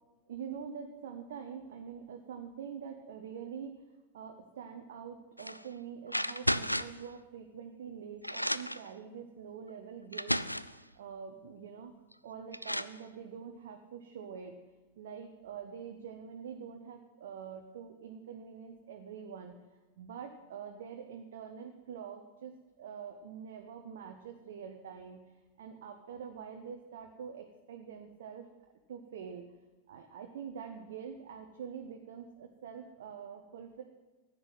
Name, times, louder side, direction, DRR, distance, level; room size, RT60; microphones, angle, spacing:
voice 1, 0.3-3.8 4.1-11.9 12.2-14.5 15.0-19.6 20.0-22.5 22.8-25.2 25.6-28.5 28.9-29.5 29.9-33.8, right 7 dB, 60° right, 4 dB, 1.0 m, -45 dB
sound 1, 5.4-5.6 6.1-7.0 7.9-8.0 8.2-8.9 9.7-9.8 10.1-10.8 12.1-12.2 12.5-13.0, equal, 90° left, 0.3 m, -33 dB
10.5 x 8.1 x 9.0 m, 1.2 s
figure-of-eight pair, 90°, 0 cm